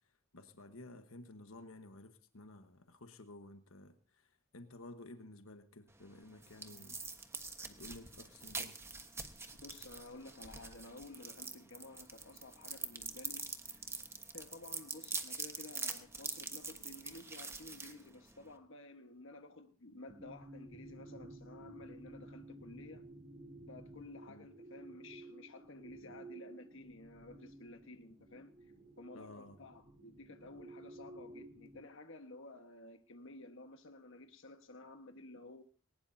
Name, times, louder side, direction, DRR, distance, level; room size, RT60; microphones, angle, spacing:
voice 1, 0.3-7.0 7.6-8.8 24.3-24.5 29.1-29.6, left 2 dB, 90° left, 1.3 m, -53 dB
sound 1, 5.9-18.6, right 4 dB, 15° right, 1.2 m, -45 dB
voice 2, 9.6-13.8 14.3-23.0 23.7-28.5 29.0-35.6, left 2 dB, 65° left, 1.4 m, -53 dB
sound 2, 20.1-31.8, right 2 dB, 45° right, 2.4 m, -54 dB
20.0 x 19.0 x 2.7 m
head